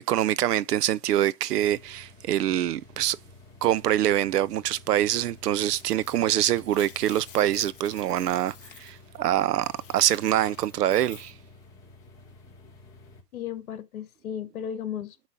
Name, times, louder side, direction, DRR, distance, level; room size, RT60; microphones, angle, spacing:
voice 1, 0.1-3.2 3.6-11.3, right 12 dB, 75° right, 0.6 m, -25 dB
sound 1, 1.5-13.2, left 2 dB, 5° left, 1.1 m, -51 dB
sound 2, 5.2-5.3 5.7-11.3, left 10 dB, 35° left, 0.6 m, -50 dB
voice 2, 13.3-15.3, left 9 dB, 60° left, 1.4 m, -35 dB
8.3 x 3.1 x 5.2 m
hypercardioid pair, 160°, 48 cm